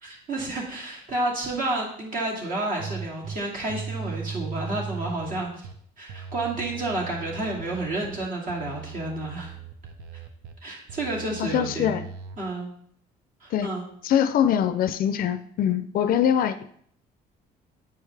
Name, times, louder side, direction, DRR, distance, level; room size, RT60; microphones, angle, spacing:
voice 1, 0.0-5.7 6.0-9.5 10.6-12.0 12.4-12.7 13.4-13.9, right 2 dB, 55° right, -2 dB, 2.4 m, -30 dB
sound 1, 2.8-3.4 3.7-5.7 6.1-8.2 8.5-10.5 10.9-12.4, right 6 dB, 75° right, 0.7 m, -38 dB
voice 2, 11.4-12.1 13.5-13.7 14.0-16.7, left 9 dB, 60° left, 12 dB, 0.4 m, -23 dB
9.1 x 4.8 x 3.3 m, 0.63 s
cardioid pair, 110°, 17 cm